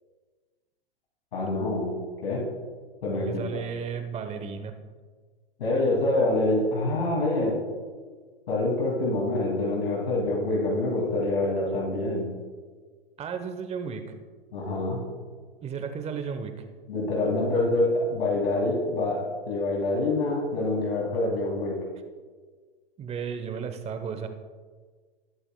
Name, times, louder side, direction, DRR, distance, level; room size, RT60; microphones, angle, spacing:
voice 1, 1.3-1.9 2.2-2.5 3.0-3.6 5.6-7.6 8.5-12.3 14.5-15.0 16.9-21.9, left 2 dB, 70° left, -3 dB, 2.7 m, -26 dB
voice 2, 3.1-4.7 13.2-14.0 15.6-16.5 23.0-24.3, right 6 dB, 20° right, 8 dB, 1.1 m, -34 dB
19.5 x 8.7 x 2.3 m, 1.5 s
hypercardioid pair, 115°, 30 cm